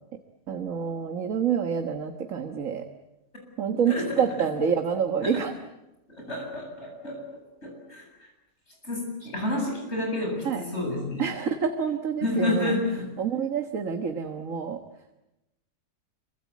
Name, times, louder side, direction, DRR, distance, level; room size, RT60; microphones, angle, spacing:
voice 1, 0.5-2.8 3.6-5.5 10.5-10.6 11.2-12.6 13.2-14.8, right 7 dB, 55° right, 6 dB, 1.7 m, -27 dB
voice 2, 3.9-4.5 5.2-5.4 6.1-7.2 7.6-8.1 8.8-11.3 12.2-13.1, left 2 dB, 40° left, 1 dB, 8.2 m, -30 dB
26.0 x 24.5 x 8.4 m, 0.94 s
omnidirectional pair, 1.7 m